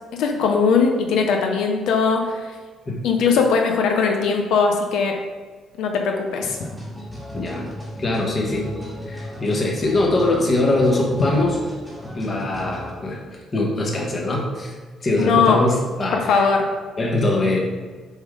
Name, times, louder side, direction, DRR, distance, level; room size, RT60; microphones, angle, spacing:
voice 1, 0.2-2.4 3.0-5.2 5.8-6.6 15.2-15.6 16.1-16.7, left 5 dB, 85° left, 3 dB, 0.7 m, -19 dB
sound 1, 6.4-12.9, left 1 dB, 5° left, 1.6 m, -35 dB
voice 2, 7.3-7.7 8.0-8.7 9.1-11.6 12.1-14.8 15.0-16.5 17.0-17.6, left 2 dB, 25° left, -1 dB, 1.2 m, -22 dB
7.2 x 3.7 x 4.9 m, 1.4 s
cardioid pair, 165°, 0 cm